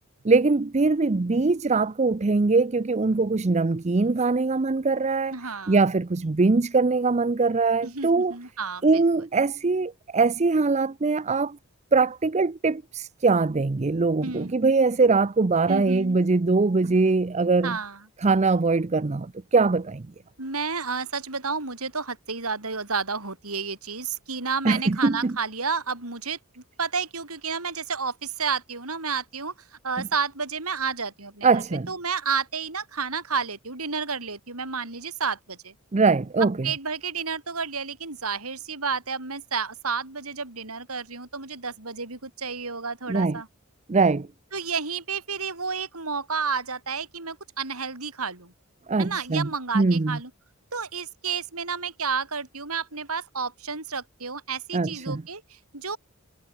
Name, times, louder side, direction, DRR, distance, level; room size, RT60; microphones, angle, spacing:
voice 1, 0.2-5.3 5.7-8.3 8.8-11.6 11.9-17.8 18.2-20.1 24.6-25.4 31.4-31.9 35.9-36.5 43.1-43.4 43.9-44.3 48.9-49.5 49.7-50.2 54.7-55.2, right 3 dB, 30° right, 0.6 m, -22 dB
voice 2, 5.3-5.8 7.8-9.0 14.2-14.5 15.7-16.2 17.6-18.1 20.4-35.7 36.6-43.5 44.5-48.5 49.0-50.3 50.7-56.0, right 5 dB, 85° right, 5.7 m, -31 dB
head